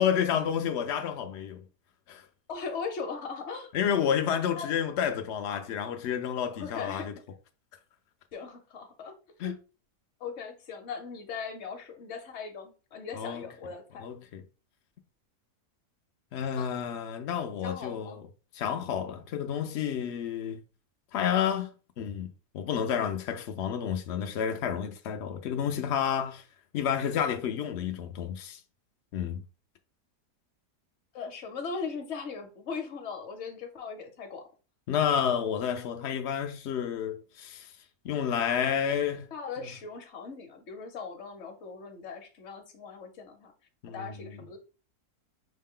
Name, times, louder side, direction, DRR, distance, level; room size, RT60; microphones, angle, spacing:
voice 1, 0.0-1.6 2.1-2.2 3.7-7.1 9.4-9.5 13.1-13.4 14.0-14.4 16.3-18.3 18.5-20.6 21.1-21.7 22.0-22.3 22.5-26.4 26.7-28.6 29.1-29.4 34.9-37.7 38.0-39.3 43.8-44.4, left 8 dB, 85° left, 0.6 m, -30 dB
voice 2, 2.5-3.7 4.6-4.8 6.5-7.1 8.3-9.1 9.4-9.5 10.2-14.1 16.5-16.7 17.6-18.2 31.1-34.4 39.3-43.5 43.9-44.6, left 5 dB, 50° left, 0.9 m, -39 dB
5.9 x 2.1 x 3.6 m
omnidirectional pair, 1.7 m